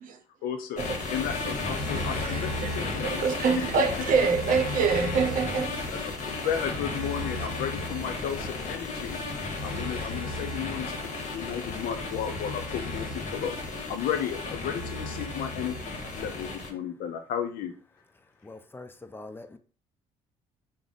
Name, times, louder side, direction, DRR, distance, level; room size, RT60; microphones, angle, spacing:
voice 1, 0.4-3.2 5.9-9.2 9.6-13.5 13.9-17.7, left 9 dB, 65° left, 0.6 m, -34 dB
sound 1, 0.8-16.7, left 2 dB, 50° left, 1.0 m, -33 dB
voice 2, 1.9-6.0 6.5-6.7 7.4-7.5, right 5 dB, 60° right, 0.7 m, -27 dB
voice 3, 18.4-19.6, left 2 dB, 15° left, 0.5 m, -44 dB
3.4 x 2.1 x 3.9 m
hypercardioid pair, 60°, 16 cm